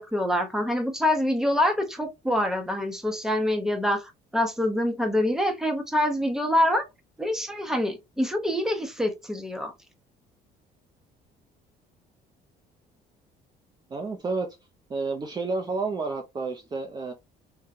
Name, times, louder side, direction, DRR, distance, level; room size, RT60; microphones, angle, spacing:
voice 1, 0.0-6.8 7.2-9.7, left 1 dB, 5° right, 0.8 m, -25 dB
voice 2, 13.9-14.6 14.9-17.1, right 3 dB, 25° right, 0.5 m, -30 dB
3.7 x 2.2 x 2.6 m
cardioid pair, 110°, 17 cm